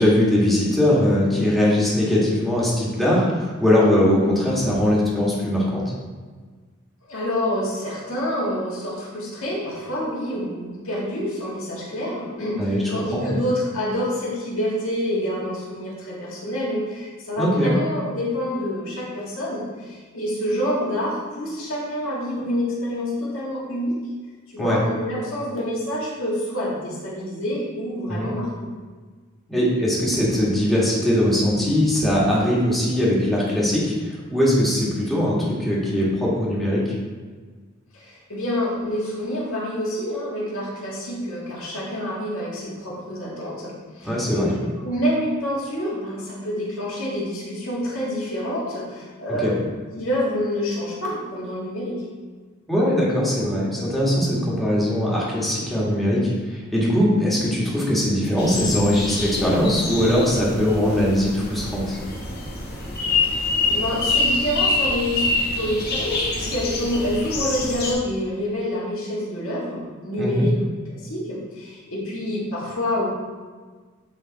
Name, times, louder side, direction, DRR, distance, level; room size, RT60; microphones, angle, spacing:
voice 1, 0.0-5.8 12.6-12.8 13.1-13.4 17.4-17.7 24.6-24.8 28.1-28.3 29.5-36.8 44.0-44.6 49.4-49.5 52.7-62.0 70.2-70.5, left 1 dB, ahead, -6 dB, 1.8 m, -21 dB
voice 2, 7.1-24.0 24.5-28.7 37.9-44.5 44.8-49.5 50.0-52.0 63.0-70.5 70.9-73.1, left 1 dB, 80° left, -5 dB, 2.1 m, -27 dB
sound 1, 58.4-67.9, left 3 dB, 50° left, 1.4 m, -26 dB
9.7 x 3.8 x 4.1 m, 1.4 s
head